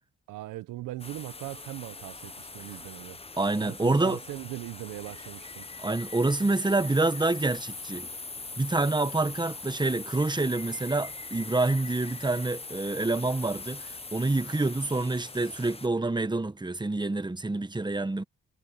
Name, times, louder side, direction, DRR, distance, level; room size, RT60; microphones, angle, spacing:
voice 1, 0.3-3.2 3.6-5.6, right 17 dB, 80° right, 1.0 m, -39 dB
sound 1, 1.0-15.9, left 3 dB, 20° left, 1.2 m, -41 dB
voice 2, 3.4-4.2 5.8-8.1 8.6-18.2, right 2 dB, 15° right, 1.4 m, -27 dB
supercardioid pair, 50°, 31 cm